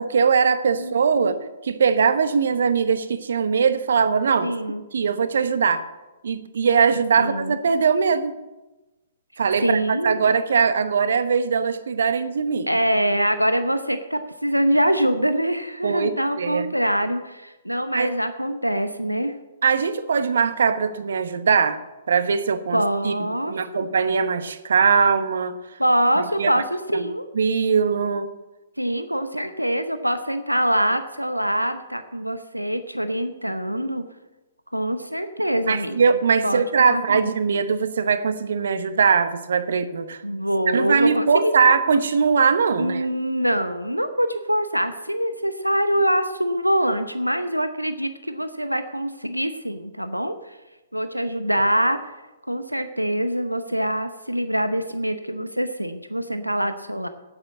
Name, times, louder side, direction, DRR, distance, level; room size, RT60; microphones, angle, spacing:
voice 1, 0.0-1.4 1.6-4.5 4.9-5.8 6.2-8.3 9.4-12.7 15.8-16.1 16.4-16.7 17.9-18.1 19.6-21.8 22.1-23.1 23.5-25.6 26.4-26.5 26.9-27.0 27.3-28.3 35.7-40.2 40.7-43.1, right 5 dB, 60° right, 12 dB, 0.9 m, -21 dB
voice 2, 0.8-1.4 4.4-4.8 7.2-7.6 9.6-10.2 12.7-19.3 22.7-23.9 25.8-27.3 28.8-34.0 34.7-36.1 36.4-36.6 36.9-37.3 40.2-41.7 42.8-50.6 50.9-52.0 52.5-57.1, equal, 90° right, 9 dB, 0.8 m, -24 dB
8.9 x 8.8 x 8.2 m, 1.1 s
figure-of-eight pair, 120°, 0 cm